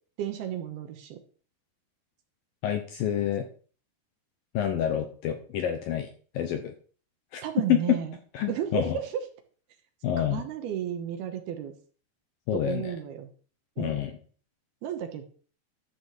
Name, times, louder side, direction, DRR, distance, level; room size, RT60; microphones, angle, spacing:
voice 1, 0.2-1.2 7.4-8.2 8.5-9.2 10.2-11.7 12.5-13.3 13.8-14.0 14.8-15.2, right 9 dB, 70° right, 6 dB, 2.9 m, -33 dB
voice 2, 2.6-3.4 4.5-6.1 6.3-6.7 7.3-7.4 7.7-8.0 8.3-9.0 10.0-10.4 12.5-12.9 13.8-14.1, left 10 dB, 75° left, 6 dB, 2.2 m, -27 dB
12.0 x 6.1 x 7.4 m, 0.42 s
omnidirectional pair, 5.1 m